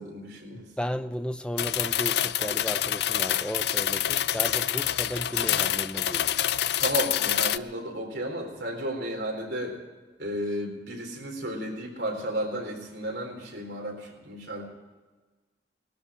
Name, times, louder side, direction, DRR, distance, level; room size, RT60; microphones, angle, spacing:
voice 1, 0.0-0.6 6.8-9.8 10.2-14.7, right 1 dB, 75° right, 1 dB, 4.1 m, -33 dB
voice 2, 0.5-6.5, equal, 5° left, 9 dB, 0.5 m, -34 dB
sound 1, 1.6-7.6, left 11 dB, 65° left, 0.4 m, -27 dB
19.5 x 13.0 x 5.1 m, 1.3 s
head